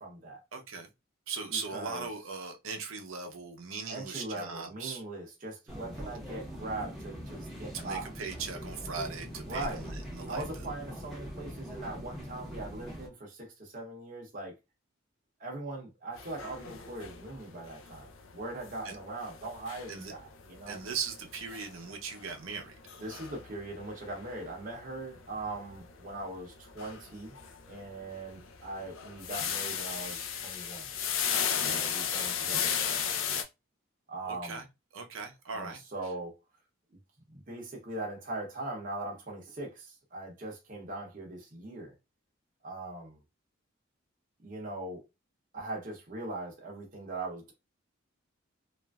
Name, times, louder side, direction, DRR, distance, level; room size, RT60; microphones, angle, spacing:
voice 1, 0.0-0.4 1.5-2.1 3.9-8.1 9.5-9.8 10.3-14.5 15.4-18.1 18.3-20.8 23.0-27.3 27.7-30.9 31.5-33.2 34.1-34.6 35.5-36.3 37.3-41.9 42.6-43.2 44.4-45.0 45.5-47.5, right 2 dB, 40° right, 0.7 m, -40 dB
voice 2, 0.5-0.9 1.3-5.0 7.7-10.6 18.8-19.0 19.9-20.1 20.7-22.8 34.2-34.7 34.9-35.8, right 5 dB, 85° right, 0.6 m, -39 dB
sound 1, 5.7-13.1, equal, ahead, 0.9 m, -42 dB
sound 2, 16.2-33.4, left 8 dB, 85° left, 0.5 m, -36 dB
3.0 x 2.5 x 2.3 m
head